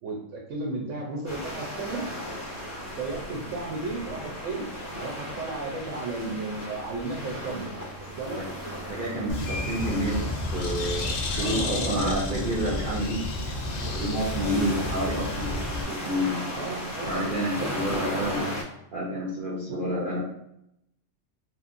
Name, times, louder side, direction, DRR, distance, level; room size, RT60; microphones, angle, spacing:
voice 1, 0.0-2.1 3.0-4.7 5.0-7.7 8.0-8.4 11.3-12.6 16.5-17.3 17.5-18.0 19.7-19.8, right 3 dB, 80° right, -2 dB, 1.0 m, -34 dB
sound 1, 1.2-18.6, equal, 15° left, 0.6 m, -36 dB
voice 2, 8.9-10.2 10.5-13.6 13.9-16.4 17.1-18.4 18.9-20.2, equal, 55° right, -5 dB, 0.7 m, -29 dB
Bird, 9.3-15.8, left 2 dB, 60° left, 0.6 m, -31 dB
2.9 x 2.5 x 2.5 m, 0.79 s
omnidirectional pair, 1.3 m